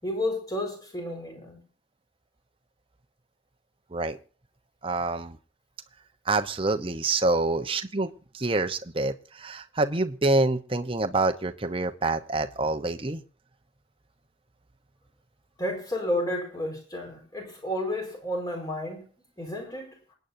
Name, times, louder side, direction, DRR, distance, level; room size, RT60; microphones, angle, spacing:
voice 1, 0.0-1.6 15.6-19.1 19.4-19.9, left 1 dB, 20° left, 1 dB, 4.7 m, -31 dB
voice 2, 4.8-5.4 6.3-13.2, right 2 dB, 30° right, 8 dB, 0.9 m, -27 dB
27.5 x 9.3 x 2.7 m, 0.39 s
head